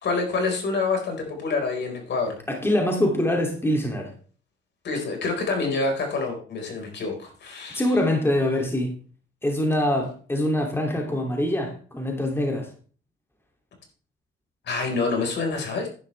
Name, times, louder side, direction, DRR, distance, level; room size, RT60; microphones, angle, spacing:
voice 1, 0.0-2.4 4.8-7.9 14.6-15.9, left 3 dB, 60° left, 2 dB, 4.6 m, -27 dB
voice 2, 2.5-4.1 7.7-9.0 9.4-12.7, left 1 dB, 10° left, 1 dB, 2.6 m, -24 dB
11.0 x 11.0 x 3.3 m, 0.41 s
cardioid pair, 90°, 20 cm